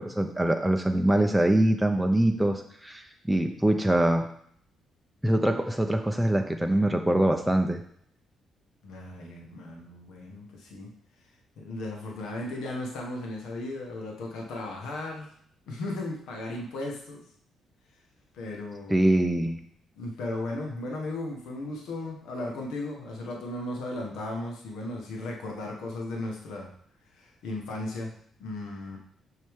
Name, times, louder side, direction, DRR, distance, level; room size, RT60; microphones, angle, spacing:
voice 1, 0.0-4.3 5.2-7.8 18.9-19.6, right 1 dB, 5° right, 4 dB, 0.6 m, -24 dB
voice 2, 8.8-10.9 11.6-15.3 15.7-17.2 18.3-19.1 19.9-26.7 27.1-28.1 28.4-29.0, left 2 dB, 85° left, 0 dB, 1.3 m, -36 dB
6.3 x 5.5 x 3.6 m, 0.64 s
cardioid pair, 90°, 0 cm